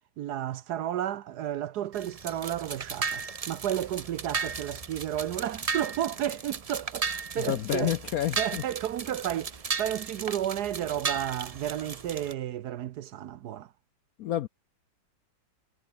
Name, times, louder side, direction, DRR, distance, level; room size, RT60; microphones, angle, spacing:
voice 1, 0.2-7.9 8.4-13.7, right 11 dB, 70° right, 1.1 m, -32 dB
sound 1, 1.9-12.3, right 5 dB, 40° right, 0.5 m, -35 dB
voice 2, 7.4-8.6 14.2-14.5, left 12 dB, 70° left, 0.8 m, -29 dB
omnidirectional pair, 2.1 m